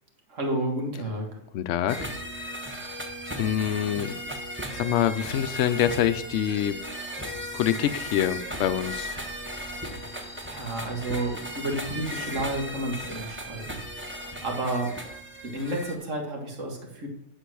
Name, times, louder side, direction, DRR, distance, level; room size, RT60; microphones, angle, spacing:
voice 1, 0.3-1.4 10.4-15.1 15.4-17.1, right 1 dB, 70° right, 2 dB, 2.2 m, -31 dB
voice 2, 1.5-2.1 2.4-2.6 3.4-4.1 4.7-6.8 7.5-9.1, left 10 dB, 70° left, 11 dB, 0.9 m, -26 dB
sound 1, 1.9-15.9, equal, 10° right, 1.2 m, -36 dB
10.0 x 5.3 x 6.2 m, 0.75 s
omnidirectional pair, 1.4 m